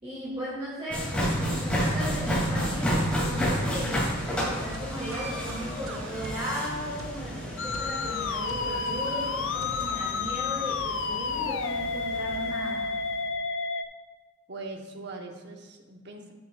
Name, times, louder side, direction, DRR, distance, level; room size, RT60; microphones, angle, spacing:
voice 1, 0.0-12.9, equal, 25° right, -10 dB, 2.0 m, -37 dB
sound 1, 0.9-12.9, equal, 5° left, 2.4 m, -31 dB
sound 2, 4.7-9.9, right 2 dB, 70° right, 0.7 m, -43 dB
Musical instrument, 7.6-13.9, left 4 dB, 60° left, 0.4 m, -30 dB
voice 2, 14.5-16.3, right 3 dB, 50° right, 2 dB, 0.9 m, -41 dB
8.8 x 8.2 x 2.3 m, 1.3 s
head